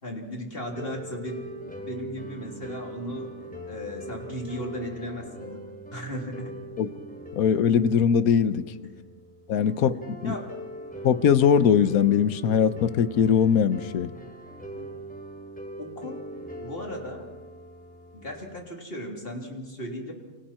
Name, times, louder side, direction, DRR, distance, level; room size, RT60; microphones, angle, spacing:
voice 1, 0.0-6.6 10.2-10.6 14.7-15.0 15.8-16.2 16.5-17.3 18.1-20.1, equal, 40° left, 3.5 m, -36 dB
sound 1, 0.7-18.7, right 1 dB, 5° left, 3.1 m, -41 dB
voice 2, 7.4-8.6 9.5-10.4 11.0-14.1, left 7 dB, 85° left, 1.3 m, -21 dB
29.5 x 24.5 x 4.4 m
omnidirectional pair, 1.5 m